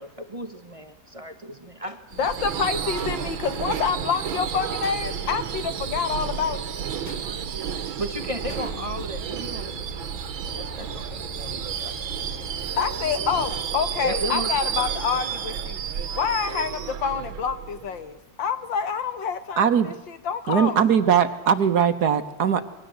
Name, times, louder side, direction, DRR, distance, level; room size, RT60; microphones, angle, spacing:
voice 1, 0.0-2.1 8.0-12.3 14.0-15.4, equal, 20° right, 8 dB, 1.4 m, -35 dB
Subway metro underground / Screech, 2.1-18.1, right 8 dB, 90° right, 2.0 m, -31 dB
voice 2, 2.2-6.8 12.8-15.8 16.1-20.8, left 6 dB, 70° left, 11 dB, 2.1 m, -27 dB
sound 1, 2.9-3.7 4.8-5.5 7.0-7.6 8.5-9.0, left 3 dB, 85° left, 4.2 m, -44 dB
sound 2, 8.3-13.6, left 3 dB, 20° left, 4.3 m, -42 dB
voice 3, 19.6-19.9 20.5-22.7, right 7 dB, 55° right, 10 dB, 1.6 m, -20 dB
28.5 x 21.5 x 8.0 m, 0.96 s
omnidirectional pair, 2.1 m